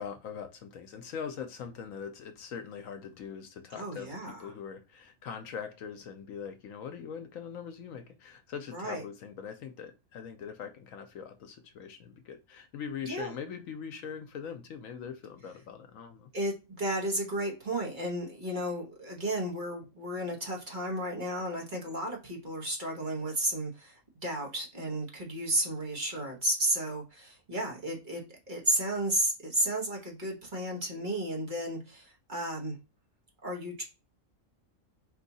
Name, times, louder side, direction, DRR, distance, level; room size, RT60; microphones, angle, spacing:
voice 1, 0.0-16.3, left 7 dB, 70° left, 1.0 m, -42 dB
voice 2, 3.8-4.5 8.7-9.0 13.0-13.3 16.3-32.8 33.4-33.8, right 1 dB, 35° right, 1.4 m, -33 dB
4.6 x 2.7 x 4.0 m
omnidirectional pair, 1.5 m